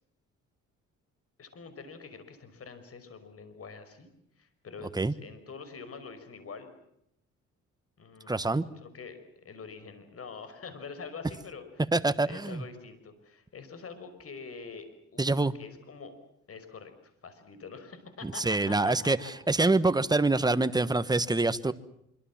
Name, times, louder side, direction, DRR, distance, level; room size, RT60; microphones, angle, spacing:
voice 1, 1.4-4.1 4.4-6.7 8.0-11.9 12.2-16.1 16.5-16.9 17.2-19.1, left 5 dB, 50° left, 10 dB, 5.6 m, -45 dB
voice 2, 8.3-8.6 11.9-12.6 15.2-15.5 18.2-19.2 19.5-21.7, right 2 dB, 15° right, 13 dB, 1.3 m, -25 dB
25.5 x 25.0 x 7.5 m, 0.76 s
cardioid pair, 90°, 30 cm